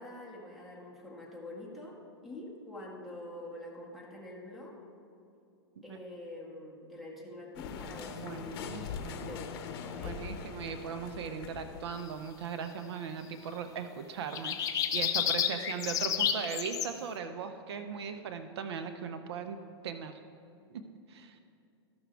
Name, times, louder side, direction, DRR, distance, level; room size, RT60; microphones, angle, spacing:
voice 1, 0.0-2.0 2.2-4.8 5.8-8.8 9.2-10.2 15.4-15.8, left 1 dB, ahead, -3 dB, 1.8 m, -46 dB
sound 1, 7.5-12.5, left 6 dB, 60° left, 0.9 m, -42 dB
voice 2, 8.2-9.4 10.0-20.2 20.7-20.8 21.1-21.4, right 6 dB, 75° right, 8 dB, 0.7 m, -39 dB
sound 2, 14.3-16.9, left 9 dB, 25° left, 0.6 m, -30 dB
14.0 x 6.1 x 3.4 m, 2.6 s
hypercardioid pair, 125°, 14 cm